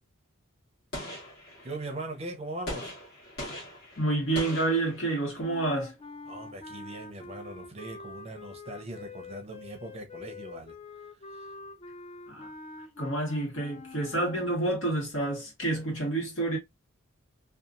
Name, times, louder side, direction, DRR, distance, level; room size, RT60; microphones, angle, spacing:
Gunshot gunfire, 0.9-2.0 2.7-5.4, left 1 dB, 50° left, 1.3 m, -41 dB
voice 1, 1.6-3.0 6.3-10.7 11.3-11.6, right 2 dB, 30° right, 0.6 m, -40 dB
voice 2, 4.0-5.9 12.3-12.5 13.0-16.6, right 2 dB, 65° left, 1.4 m, -29 dB
sound 1, 5.4-14.6, left 3 dB, 30° left, 0.3 m, -45 dB
2.7 x 2.4 x 2.4 m
head